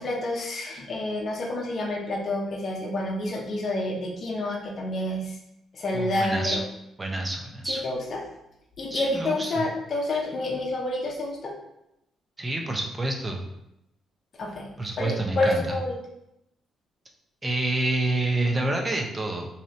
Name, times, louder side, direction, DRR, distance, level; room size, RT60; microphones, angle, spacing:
voice 1, 0.0-5.4 5.7-6.6 7.7-8.2 8.8-11.5 14.4-15.9, left 2 dB, 50° left, -2 dB, 0.6 m, -29 dB
voice 2, 5.9-6.6 7.0-7.8 8.9-9.6 12.4-13.5 14.8-15.6 17.4-19.5, right 2 dB, 20° right, 1 dB, 0.6 m, -28 dB
2.7 x 2.6 x 3.2 m, 0.84 s
cardioid pair, 90°, 0 cm